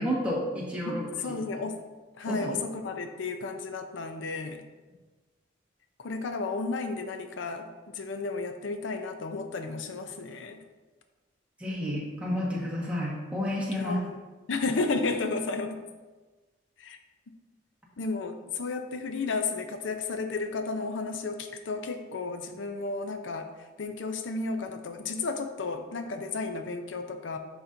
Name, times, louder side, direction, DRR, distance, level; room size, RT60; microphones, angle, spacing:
voice 1, 0.0-1.0 2.3-2.5 11.6-14.0, equal, 5° right, -5 dB, 1.3 m, -30 dB
voice 2, 0.9-1.8 2.1-4.6 6.0-10.6 13.7-14.2 14.5-15.8 16.8-17.0 18.0-23.5 23.8-27.4, left 3 dB, 80° left, 7 dB, 0.5 m, -33 dB
10.0 x 4.2 x 2.6 m, 1.2 s
head